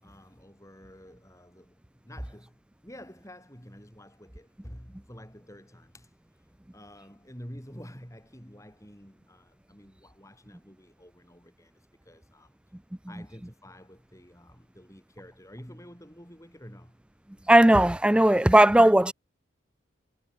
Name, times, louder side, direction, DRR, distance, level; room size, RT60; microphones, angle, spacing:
voice 1, 0.0-6.1 6.7-12.6 13.1-17.0, equal, 15° left, 7.8 m, -49 dB
voice 2, 17.5-19.1, right 1 dB, 5° right, 0.3 m, -17 dB
head